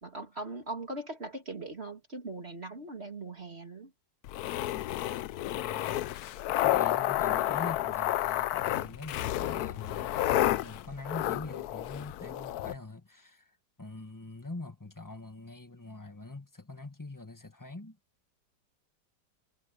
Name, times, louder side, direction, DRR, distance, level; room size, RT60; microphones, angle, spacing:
voice 1, 0.0-3.9 10.6-10.7, right 2 dB, 35° right, 2.6 m, -40 dB
sound 1, 4.3-12.7, left 14 dB, 70° left, 1.0 m, -30 dB
voice 2, 5.5-6.2 6.6-18.0, left 2 dB, 10° left, 1.5 m, -44 dB
omnidirectional pair, 1.9 m